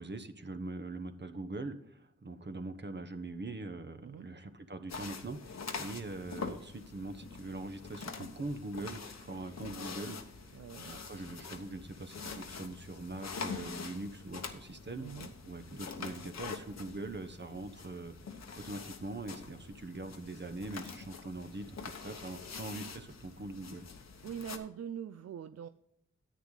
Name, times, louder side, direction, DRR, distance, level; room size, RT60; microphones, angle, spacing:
voice 1, 0.0-10.5 10.8-15.1 15.4-18.1 18.5-23.9, right 2 dB, 35° right, 9 dB, 1.0 m, -42 dB
sound 1, 4.9-24.6, left 5 dB, 65° left, 1.1 m, -45 dB
voice 2, 10.5-10.9 15.0-15.3 24.2-25.7, right 8 dB, 60° right, 11 dB, 0.5 m, -43 dB
10.5 x 8.2 x 3.9 m, 0.74 s
cardioid pair, 55°, 29 cm